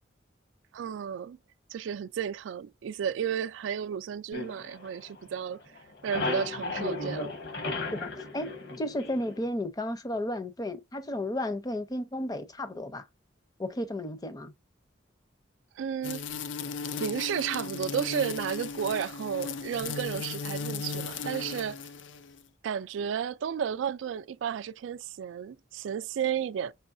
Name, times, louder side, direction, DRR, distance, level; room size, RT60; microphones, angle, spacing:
voice 1, 0.7-1.4 1.7-5.6 6.0-7.3 15.8-16.2 17.0-21.8 22.6-26.7, right 8 dB, 80° right, 0.3 m, -32 dB
sound 1, 4.3-5.5 5.8-9.5, left 3 dB, 60° left, 1.2 m, -35 dB
voice 2, 7.9-13.1 13.6-14.5, left 1 dB, 20° left, 0.5 m, -33 dB
sound 2, 16.0-22.4, left 5 dB, 80° left, 0.5 m, -36 dB
5.4 x 3.0 x 2.5 m
head